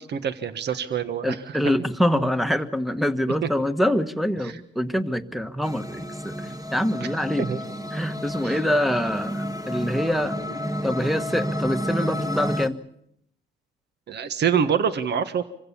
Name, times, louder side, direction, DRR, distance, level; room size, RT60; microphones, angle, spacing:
voice 1, 0.0-1.6 3.4-3.5 4.4-4.6 7.4-7.6 8.4-8.6 14.1-15.4, right 7 dB, 60° right, 11 dB, 1.4 m, -26 dB
voice 2, 1.2-6.3 6.7-7.5 7.9-10.4 10.8-12.8, equal, ahead, 11 dB, 1.4 m, -25 dB
sound 1, 5.6-12.7, equal, 20° right, 1.6 m, -30 dB
25.5 x 16.0 x 8.6 m, 0.75 s
cardioid pair, 90°, 20 cm